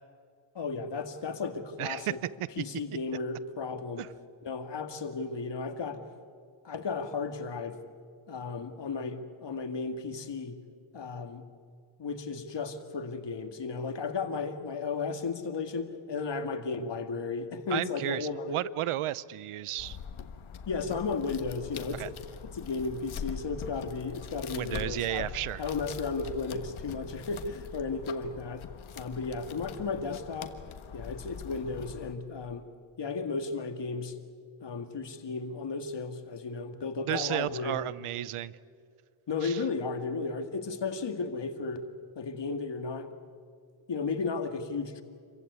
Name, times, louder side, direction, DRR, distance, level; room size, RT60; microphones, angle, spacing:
voice 1, 0.5-2.2 2.6-4.1 4.4-6.0 6.6-7.8 8.3-10.6 10.9-11.4 12.0-18.7 20.7-22.1 22.5-25.3 25.6-28.7 28.9-30.6 30.9-32.7 33.0-34.2 34.6-37.8 39.3-41.9 42.2-43.1 43.9-45.0, left 4 dB, 60° left, 7 dB, 2.1 m, -34 dB
voice 2, 1.8-2.1 4.0-4.1 17.7-20.0 22.0-22.1 24.5-25.6 37.1-38.5 39.4-39.6, right 14 dB, 90° right, 20 dB, 0.7 m, -33 dB
sound 1, 19.8-32.1, left 7 dB, 75° left, 1.5 m, -43 dB
27.5 x 15.5 x 9.5 m, 2.2 s
cardioid pair, 75°, 49 cm